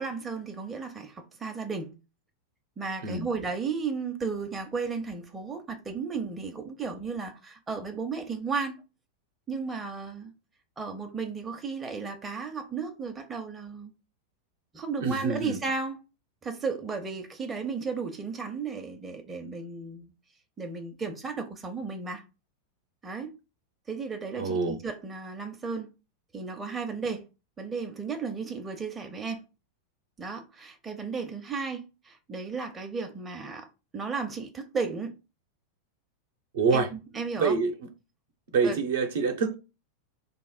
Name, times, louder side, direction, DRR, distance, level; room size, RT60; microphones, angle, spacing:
voice 1, 0.0-2.0 2.8-8.8 9.5-10.3 10.8-13.9 14.7-16.0 16.4-20.1 20.6-22.2 23.0-23.3 23.9-25.9 26.3-27.2 27.6-29.4 30.2-33.7 33.9-35.1 36.7-37.6 38.6-38.8, right 5 dB, 15° right, 0.6 m, -34 dB
voice 2, 15.0-15.6 24.3-24.8 36.5-36.9 37.4-37.7 38.5-39.6, right 4 dB, 60° right, 0.7 m, -26 dB
3.3 x 2.1 x 4.2 m
figure-of-eight pair, 90°, 0 cm